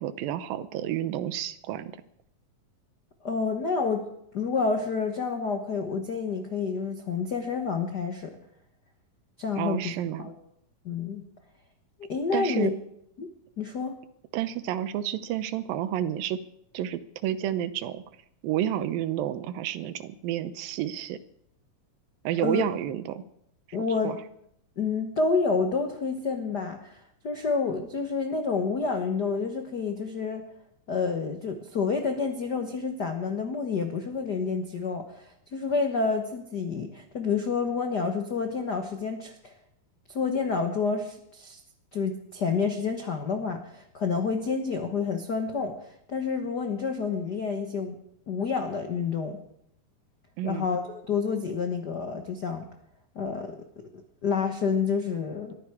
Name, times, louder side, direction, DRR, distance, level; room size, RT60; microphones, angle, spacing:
voice 1, 0.0-1.9 9.6-10.3 12.3-12.7 14.3-16.4 16.7-18.0 18.4-21.2 22.2-23.2 24.0-24.2 50.4-50.7, right 11 dB, 85° right, 13 dB, 2.6 m, -30 dB
voice 2, 3.2-4.1 4.3-8.4 9.4-9.9 10.2-10.3 10.8-11.2 12.1-12.7 13.2-13.3 13.6-13.9 22.4-22.6 23.7-24.2 24.8-30.5 30.9-39.5 40.1-41.6 41.9-48.0 48.3-49.4 50.4-52.7 53.1-53.6 54.2-55.5, left 5 dB, 85° left, 5 dB, 0.9 m, -29 dB
21.0 x 14.5 x 4.8 m, 0.73 s
omnidirectional pair, 4.0 m